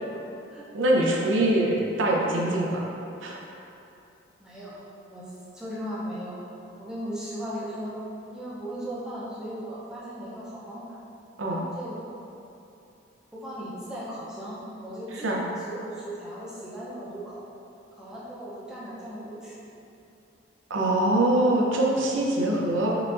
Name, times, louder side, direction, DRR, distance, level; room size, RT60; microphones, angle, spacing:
voice 1, 0.1-0.7 4.4-4.8 5.1-6.4 6.8-8.0 8.3-11.0 11.5-12.0 13.3-17.5 18.0-19.5, equal, 5° right, -8 dB, 0.5 m, -37 dB
voice 2, 0.7-2.8 3.2-3.4 11.4-11.6 15.2-15.4 20.7-23.0, right 1 dB, 80° right, -2 dB, 0.5 m, -23 dB
4.8 x 2.4 x 2.4 m, 2.8 s
head